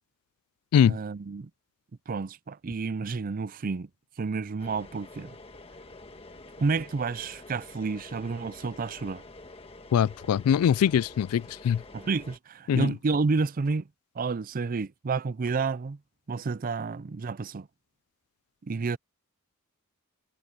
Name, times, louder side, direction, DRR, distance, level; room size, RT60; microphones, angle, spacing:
voice 1, 0.9-1.5 2.1-3.9 4.2-5.3 6.6-9.2 11.9-13.9 14.2-16.0 16.3-17.7 18.6-19.0, right 4 dB, 40° right, 0.4 m, -30 dB
sound 1, 4.6-12.4, left 2 dB, 25° left, 1.5 m, -48 dB
voice 2, 9.9-11.8 12.7-12.9, left 8 dB, 80° left, 0.3 m, -22 dB
head